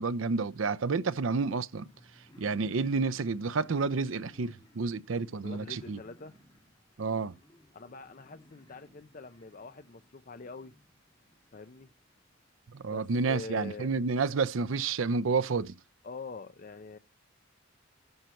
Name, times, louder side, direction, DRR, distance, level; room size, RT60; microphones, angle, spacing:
voice 1, 0.0-1.8 2.4-6.0 7.0-7.3 12.7-15.7, right 4 dB, 75° right, 0.6 m, -30 dB
sound 1, 1.8-14.1, left 1 dB, 20° left, 2.3 m, -60 dB
voice 2, 5.4-6.4 7.7-10.7 11.5-11.9 12.9-13.9 16.0-17.0, left 3 dB, 40° left, 0.6 m, -44 dB
11.0 x 4.4 x 7.7 m
head